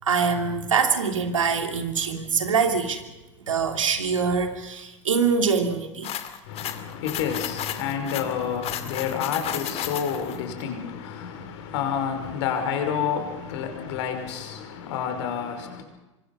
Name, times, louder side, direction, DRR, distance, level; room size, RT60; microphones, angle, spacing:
voice 1, 0.0-3.1 3.4-6.1, right 5 dB, 85° right, 2.9 m, -24 dB
sound 1, 6.0-10.4, left 11 dB, 40° left, 2.4 m, -33 dB
voice 2, 6.4-15.8, left 7 dB, 65° left, 5.5 m, -29 dB
26.5 x 24.0 x 5.6 m
hypercardioid pair, 90°, 16 cm